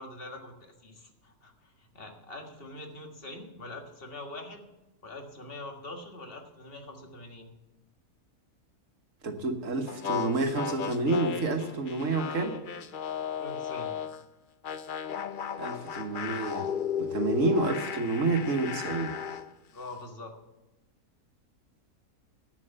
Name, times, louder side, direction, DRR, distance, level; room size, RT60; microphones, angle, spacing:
voice 1, 0.0-4.6 5.0-7.5 13.4-14.0 19.7-20.4, left 2 dB, 40° left, 3 dB, 1.8 m, -44 dB
voice 2, 9.2-12.6 15.6-16.7 17.0-19.1, right 2 dB, 60° right, 5 dB, 1.6 m, -29 dB
sound 1, 9.9-14.2 14.6-19.5, left 8 dB, 60° left, 0.5 m, -35 dB
11.0 x 9.1 x 6.7 m, 1.0 s
omnidirectional pair, 1.5 m